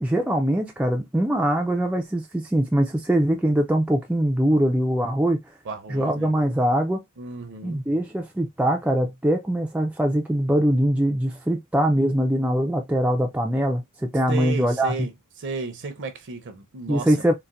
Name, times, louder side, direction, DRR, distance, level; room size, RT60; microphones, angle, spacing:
voice 1, 0.0-5.4 5.9-7.0 7.6-15.1 16.9-17.3, right 1 dB, 5° right, 0.3 m, -22 dB
voice 2, 5.6-6.3 7.2-7.8 14.3-15.1 15.4-17.3, right 4 dB, 55° right, 0.6 m, -33 dB
3.9 x 2.1 x 2.4 m
head